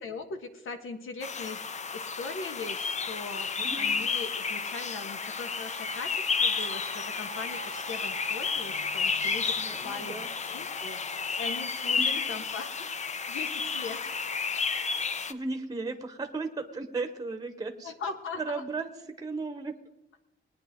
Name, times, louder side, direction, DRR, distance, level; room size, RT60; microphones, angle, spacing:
voice 1, 0.0-1.6 1.9-3.5 3.8-12.9 13.3-14.1 17.8-18.6, left 4 dB, 75° left, 7 dB, 1.4 m, -40 dB
sound 1, 1.2-15.3, left 5 dB, 35° left, 0.6 m, -31 dB
voice 2, 3.6-3.9 9.5-10.3 11.9-12.1 15.3-17.9 18.3-19.7, right 3 dB, 20° right, 7 dB, 1.0 m, -35 dB
sound 2, 4.4-11.4, right 11 dB, 90° right, 0.9 m, -50 dB
20.5 x 9.8 x 3.7 m, 0.99 s
wide cardioid pair, 135°, 21 cm